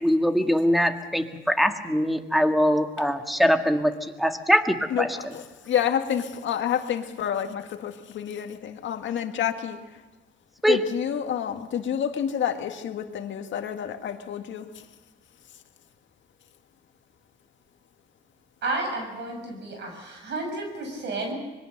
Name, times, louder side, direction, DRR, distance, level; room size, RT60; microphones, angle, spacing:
voice 1, 0.0-3.9 4.2-5.1 10.6-10.8, equal, ahead, 6 dB, 1.9 m, -22 dB
voice 2, 4.9-9.8 10.7-14.7, left 9 dB, 70° left, 6 dB, 1.9 m, -29 dB
voice 3, 18.6-21.3, right 2 dB, 65° right, 3 dB, 6.6 m, -31 dB
25.0 x 22.0 x 6.7 m, 1.1 s
cardioid pair, 90°, 20 cm